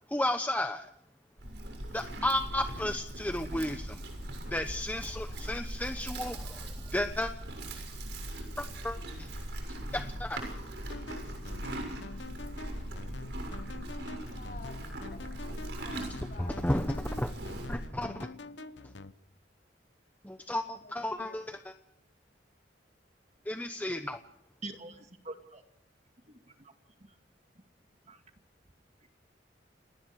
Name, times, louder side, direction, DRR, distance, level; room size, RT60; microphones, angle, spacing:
voice 1, 0.1-0.9 1.9-4.0 4.5-6.7 6.9-7.3 8.6-9.3 9.9-10.4 16.4-17.3 17.7-18.3 20.2-21.6 23.5-24.2, left 1 dB, 10° left, 7 dB, 0.9 m, -33 dB
Livestock farm animals working animals, 1.4-17.9, right 1 dB, 70° right, 6.8 m, -40 dB
sound 1, 10.9-19.1, left 2 dB, 80° left, 1.0 m, -46 dB
voice 2, 14.2-16.8 18.3-18.9 20.6-21.5, left 3 dB, 50° left, 1 dB, 5.4 m, -53 dB
voice 3, 24.6-25.6 26.3-26.7 28.1-28.2, right 2 dB, 40° right, 6 dB, 2.2 m, -45 dB
29.5 x 19.0 x 4.8 m, 0.77 s
head